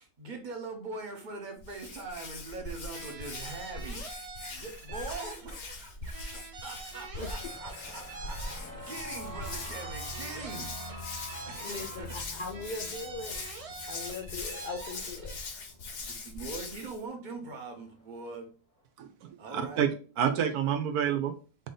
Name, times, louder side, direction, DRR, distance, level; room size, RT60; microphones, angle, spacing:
voice 1, 0.0-4.1 4.4-10.7 11.5-12.2 16.0-18.5 19.4-19.8, right 3 dB, 40° right, 3 dB, 0.8 m, -42 dB
Hands, 1.6-17.0, left 3 dB, 55° left, 1.0 m, -41 dB
sound 1, 2.9-5.8 6.1-9.0 9.3-12.2 12.5-15.4, right 4 dB, 60° right, 0.3 m, -46 dB
sound 2, 7.1-16.5 17.0-17.3 17.6-18.1, equal, 10° left, 0.8 m, -46 dB
voice 2, 11.6-13.4 13.9-15.4, left 3 dB, 80° left, 0 dB, 0.4 m, -39 dB
voice 3, 19.0-19.9 20.2-21.3, right 9 dB, 80° right, 8 dB, 1.2 m, -28 dB
4.3 x 2.7 x 3.8 m, 0.36 s
omnidirectional pair, 1.6 m